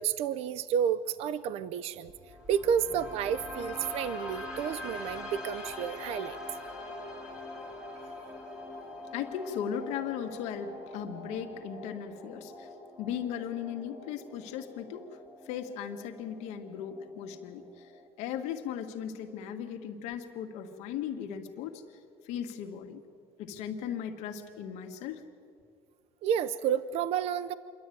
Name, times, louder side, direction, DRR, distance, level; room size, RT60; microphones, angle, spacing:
voice 1, 0.0-2.1 2.5-6.4 7.9-8.4 26.2-27.5, right 8 dB, 60° right, 16 dB, 0.6 m, -31 dB
sound 1, 2.1-18.1, left 2 dB, 5° right, 3.5 m, -44 dB
voice 2, 9.1-12.7 13.0-15.2 15.4-17.9 18.2-21.8 22.2-23.0 23.4-25.2, left 8 dB, 75° left, 4 dB, 1.7 m, -37 dB
27.0 x 11.5 x 9.3 m, 2.2 s
cardioid pair, 130°, 12 cm